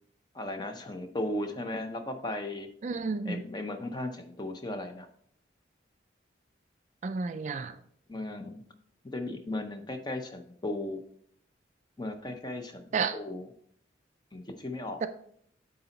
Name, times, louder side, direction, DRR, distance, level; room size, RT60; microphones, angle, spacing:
voice 1, 0.3-2.7 3.2-5.1 8.1-8.6 9.1-11.0 12.0-12.8 13.1-13.5 14.3-15.0, left 1 dB, 20° left, 0.6 m, -36 dB
voice 2, 2.8-3.4 7.0-7.8 12.9-13.2 15.0-15.1, right 5 dB, 40° right, 0.3 m, -31 dB
8.6 x 3.9 x 3.9 m
head